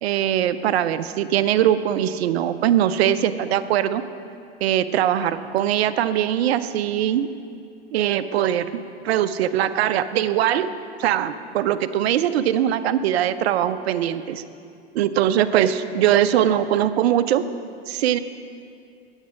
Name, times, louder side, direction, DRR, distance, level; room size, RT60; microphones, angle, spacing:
voice 1, 0.0-4.0 4.6-7.3 7.9-8.7 9.0-10.7 11.0-14.4 14.9-17.4 17.9-18.2, right 11 dB, 70° right, 12 dB, 0.6 m, -21 dB
9.2 x 8.1 x 6.3 m, 2.4 s
hypercardioid pair, 95°, 32 cm